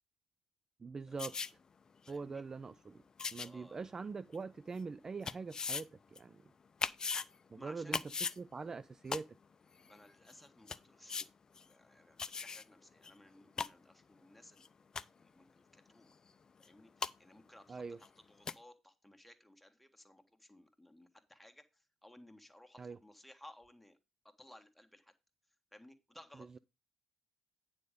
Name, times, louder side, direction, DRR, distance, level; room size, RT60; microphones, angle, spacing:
voice 1, 0.8-1.3 2.1-3.0 3.3-6.4 7.5-9.4 17.7-18.0 22.8-23.0, right 4 dB, 30° right, 0.4 m, -43 dB
sound 1, 1.2-1.5 2.1-2.2 3.2-3.5 4.3-4.4 5.2-5.8 6.1-6.2 6.8-7.2 7.9-8.4 9.1-9.2 9.9-10.0 10.3-10.4 10.7-10.8 11.1-11.2 11.5-11.6 12.2-12.6 13.0-13.1 13.4-13.7 14.6-14.7 14.9-15.2 16.6-16.7 17.0-17.1 18.0-18.1 18.5-18.6, left 5 dB, 35° left, 0.5 m, -38 dB
voice 2, 2.1-2.4 3.4-3.9 7.6-8.0 9.8-11.3 11.6-14.7 15.2-16.1 16.6-24.0 24.2-25.1 25.7-26.6, left 1 dB, 5° left, 1.6 m, -59 dB
9.4 x 5.1 x 5.1 m
figure-of-eight pair, 50°, 2 cm